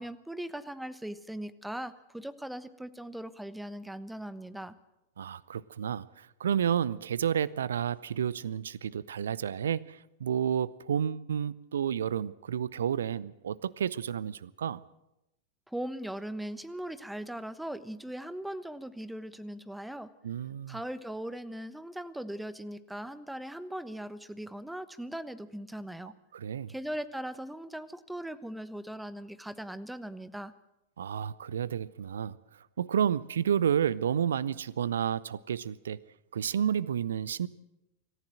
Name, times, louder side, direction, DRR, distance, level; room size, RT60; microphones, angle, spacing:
voice 1, 0.0-4.8 15.7-20.1 20.7-26.1 26.7-30.5, right 1 dB, 5° right, 15 dB, 1.1 m, -39 dB
voice 2, 5.2-14.8 20.2-20.8 26.3-26.7 31.0-32.3 32.8-36.0 36.3-37.5, right 8 dB, 65° right, 22 dB, 0.6 m, -31 dB
25.5 x 14.5 x 7.8 m, 0.92 s
figure-of-eight pair, 90°, 0 cm